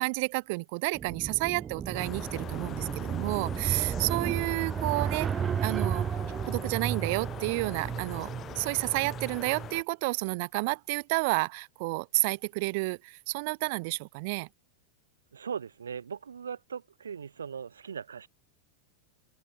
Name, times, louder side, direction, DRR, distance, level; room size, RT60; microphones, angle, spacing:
voice 1, 0.0-5.3 5.6-6.1 6.4-8.3 8.6-14.5, right 28 dB, 45° right, 0.5 m, -30 dB
sound 1, 0.9-9.7, right 8 dB, 20° right, 1.6 m, -33 dB
sound 2, 1.9-9.8, left 10 dB, 30° left, 1.4 m, -44 dB
voice 2, 4.3-4.6 15.3-18.3, right 7 dB, 70° right, 5.5 m, -39 dB
figure-of-eight pair, 90°, 0 cm